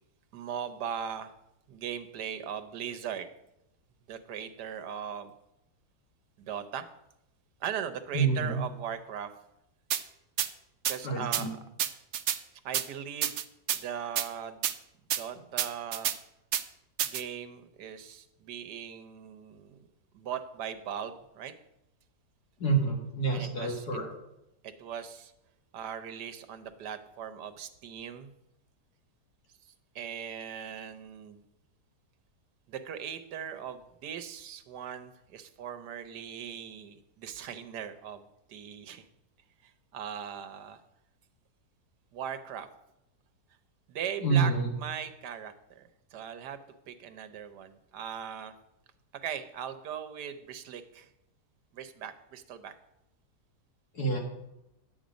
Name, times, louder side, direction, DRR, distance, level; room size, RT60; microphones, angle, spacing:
voice 1, 0.3-1.3 1.7-3.3 4.1-5.3 6.4-6.9 7.6-9.3 10.9-11.5 12.6-13.4 13.7-14.7 15.2-16.1 17.0-19.9 20.1-21.5 23.3-23.9 24.6-25.3 25.7-28.3 29.6-31.4 32.7-39.1 39.6-40.8 42.1-42.7 43.9-46.6 46.9-48.5 49.2-51.1 51.7-52.7, right 8 dB, 80° right, 11 dB, 1.4 m, -39 dB
voice 2, 8.1-8.6 11.0-11.5 22.6-24.1 44.2-44.7 53.9-54.2, right 4 dB, 70° left, 1 dB, 2.3 m, -27 dB
sound 1, 9.9-10.0 10.4-10.5 10.8-11.0 11.3-11.4 11.8-12.4 12.7-12.8 13.2-13.8 14.2-14.3 14.6-14.7 15.1-15.2 15.6-16.2 16.5-16.6 17.0-17.2, right 10 dB, 65° right, 0.7 m, -28 dB
10.5 x 8.6 x 5.1 m, 0.87 s
omnidirectional pair, 1.7 m